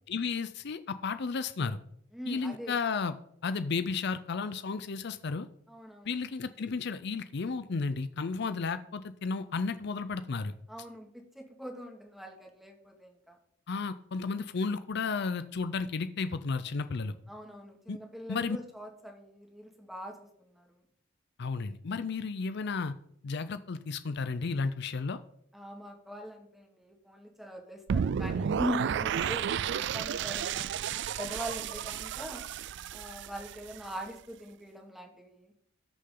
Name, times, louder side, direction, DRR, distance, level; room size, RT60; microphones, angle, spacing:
voice 1, 0.1-1.8 2.3-3.1 3.4-5.5 6.0-10.5 13.7-17.1 17.9-18.0 18.3-18.6 21.4-22.9 23.2-25.2, left 4 dB, 60° left, 12 dB, 0.5 m, -33 dB
voice 2, 2.1-2.8 5.7-6.1 10.7-13.4 17.3-20.7 25.5-30.8 31.2-32.4 32.9-35.5, equal, ahead, 2 dB, 2.1 m, -42 dB
sound 1, 27.9-33.9, right 8 dB, 65° right, 0.4 m, -32 dB
19.0 x 6.6 x 3.8 m, 0.72 s
head